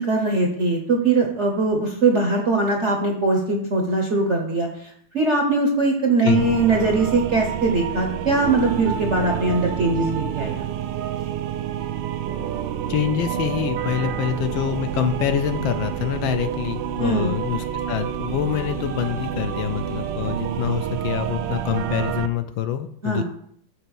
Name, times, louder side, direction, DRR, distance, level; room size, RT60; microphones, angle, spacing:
voice 1, 0.0-10.6 17.0-17.3 23.0-23.2, right 3 dB, 50° right, 2 dB, 0.8 m, -21 dB
sound 1, 6.3-22.3, right 9 dB, 75° right, 1.1 m, -28 dB
voice 2, 12.9-23.2, left 10 dB, 75° left, 9 dB, 1.2 m, -25 dB
6.7 x 4.4 x 6.3 m, 0.65 s
omnidirectional pair, 2.3 m